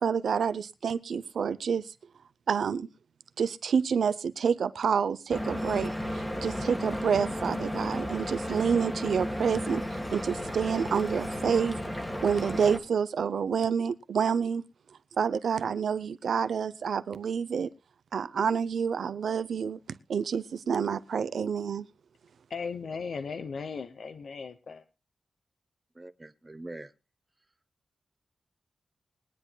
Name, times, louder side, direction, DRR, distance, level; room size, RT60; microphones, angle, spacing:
voice 1, 0.0-1.8 2.5-2.9 3.4-9.8 10.1-11.8 12.2-14.6 15.2-17.7 18.1-19.8 20.1-21.8, right 6 dB, 80° right, 0.6 m, -28 dB
Stream / Boat Water vehicle, 5.3-12.8, equal, 15° left, 1.4 m, -34 dB
voice 2, 22.5-24.8, left 5 dB, 65° left, 0.7 m, -37 dB
voice 3, 26.0-26.9, right 2 dB, 15° right, 0.7 m, -43 dB
22.0 x 9.9 x 2.2 m
wide cardioid pair, 150°, 0 cm